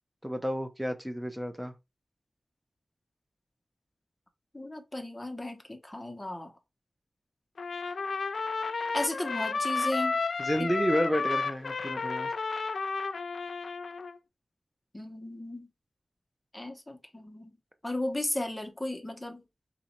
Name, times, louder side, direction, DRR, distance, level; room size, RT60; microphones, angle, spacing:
voice 1, 0.2-1.7 10.4-12.3, equal, 10° right, 0.7 m, -30 dB
voice 2, 4.5-6.5 8.7-10.2 10.6-10.7 14.9-15.7 16.5-17.5 17.8-19.4, left 1 dB, 15° left, 1.0 m, -35 dB
Trumpet, 7.6-14.2, left 4 dB, 85° left, 0.4 m, -32 dB
4.0 x 2.6 x 4.3 m
wide cardioid pair, 85°, 0 cm